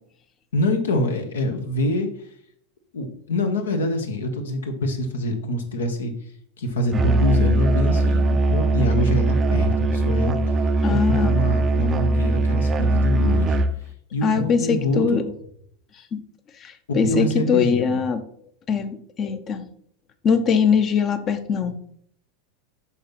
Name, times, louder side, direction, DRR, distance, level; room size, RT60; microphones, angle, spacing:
voice 1, 0.5-2.3 2.9-6.1 6.6-13.6 14.1-15.2 16.9-18.0, left 1 dB, 70° left, 5 dB, 1.3 m, -25 dB
Musical instrument, 6.9-13.8, right 2 dB, 25° right, 0.6 m, -20 dB
voice 2, 10.8-11.4 14.2-15.2 16.1-16.2 16.6-18.2 18.7-19.6 20.2-21.8, left 6 dB, 30° left, 10 dB, 0.9 m, -22 dB
8.3 x 5.8 x 4.1 m, 0.67 s
figure-of-eight pair, 85°, 0 cm